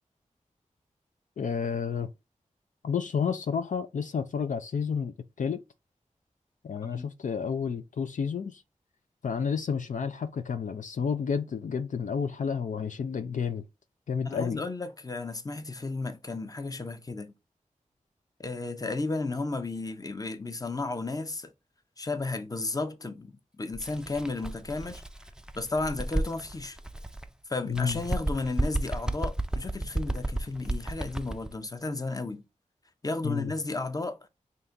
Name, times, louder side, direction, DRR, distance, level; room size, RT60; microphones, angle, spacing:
voice 1, 1.4-2.1 2.8-5.6 6.6-8.6 9.2-13.6 14.1-14.6 27.7-28.0 33.2-33.5, left 6 dB, 70° left, 0.4 m, -30 dB
voice 2, 14.2-17.3 18.4-21.5 22.0-25.0 25.5-26.8 27.5-32.4 33.0-34.2, left 3 dB, 25° left, 0.7 m, -33 dB
Bird, 23.7-27.3 27.7-31.5, right 1 dB, 5° right, 0.4 m, -33 dB
3.9 x 2.9 x 3.4 m
wide cardioid pair, 55°, 13 cm